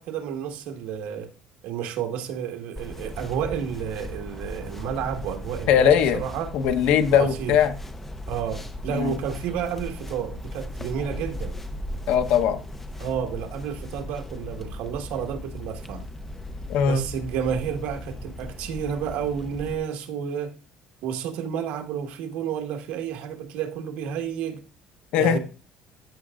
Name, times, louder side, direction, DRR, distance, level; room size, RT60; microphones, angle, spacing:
voice 1, 0.0-1.3 1.6-6.5 7.1-7.6 8.3-11.5 13.0-16.0 16.8-20.5 21.0-24.6 25.2-25.4, right 8 dB, 70° right, 1.5 m, -31 dB
sound 1, 2.8-19.7, left 1 dB, 10° left, 0.7 m, -37 dB
voice 2, 5.7-6.2 6.5-7.7 8.9-9.2 12.1-12.6 16.7-17.0 25.1-25.4, left 8 dB, 65° left, 1.0 m, -20 dB
14.0 x 6.8 x 2.5 m
cardioid pair, 165°, 3 cm